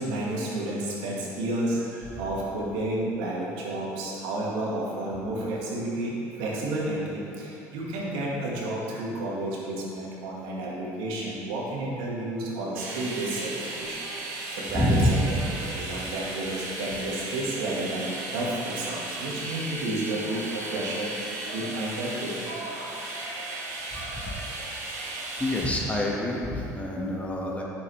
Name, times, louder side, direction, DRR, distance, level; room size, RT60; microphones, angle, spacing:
voice 1, 0.0-14.0 14.5-15.2 15.6-22.5, right 1 dB, 70° right, -4 dB, 1.6 m, -31 dB
sound 1, 12.7-25.7, right 2 dB, 90° right, 1.2 m, -35 dB
voice 2, 14.7-15.6 23.9-24.4 25.4-27.6, left 1 dB, 15° left, -3 dB, 1.4 m, -27 dB
8.3 x 6.6 x 3.2 m, 2.8 s
hypercardioid pair, 70°, 8 cm